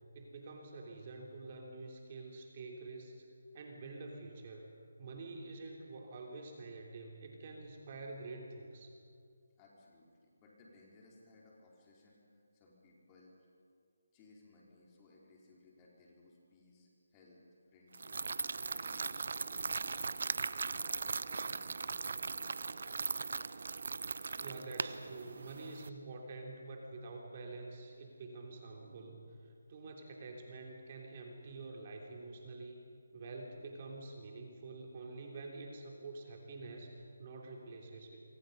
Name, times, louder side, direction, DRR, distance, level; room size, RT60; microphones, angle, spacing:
voice 1, 0.1-3.2 3.5-8.9 24.4-32.8 33.1-38.2, right 3 dB, 35° right, 1 dB, 3.3 m, -47 dB
voice 2, 9.6-13.4 14.1-17.4 17.7-20.3 20.6-23.2, left 2 dB, 20° left, -3 dB, 4.4 m, -62 dB
sound 1, 17.9-25.9, right 4 dB, 60° right, 0.7 m, -39 dB
27.5 x 24.0 x 5.4 m, 2.3 s
figure-of-eight pair, 160°, 0 cm